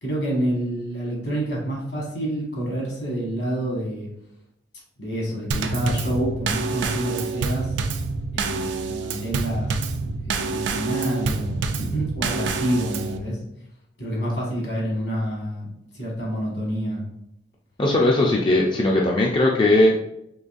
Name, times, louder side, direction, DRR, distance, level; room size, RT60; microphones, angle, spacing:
voice 1, 0.0-4.1 5.0-7.7 8.3-9.9 10.3-13.4 14.0-15.7 15.9-17.0, right 1 dB, 65° left, -3 dB, 1.5 m, -28 dB
Drum kit / Snare drum / Bass drum, 5.5-13.2, right 4 dB, 70° right, 0.4 m, -27 dB
voice 2, 17.8-20.1, left 1 dB, 25° left, -2 dB, 0.4 m, -19 dB
3.9 x 3.0 x 2.5 m, 0.80 s
head